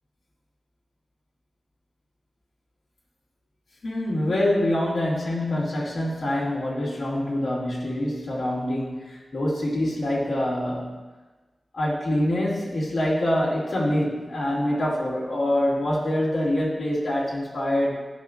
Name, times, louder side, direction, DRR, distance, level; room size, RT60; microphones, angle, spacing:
voice 1, 3.8-11.0 11.7-18.0, left 1 dB, 85° left, -6 dB, 2.2 m, -25 dB
12.0 x 5.4 x 2.5 m, 1.2 s
cardioid pair, 45°, 0 cm